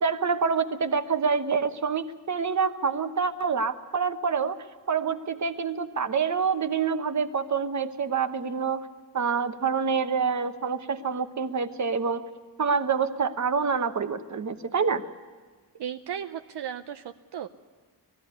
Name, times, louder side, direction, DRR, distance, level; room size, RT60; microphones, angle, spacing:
voice 1, 0.0-4.6 4.9-8.9 9.1-12.2 12.6-15.0, right 5 dB, 40° right, 9 dB, 1.1 m, -27 dB
voice 2, 15.8-17.5, right 9 dB, 70° right, 7 dB, 0.7 m, -35 dB
20.0 x 15.0 x 9.6 m, 1.4 s
wide cardioid pair, 135°, 42 cm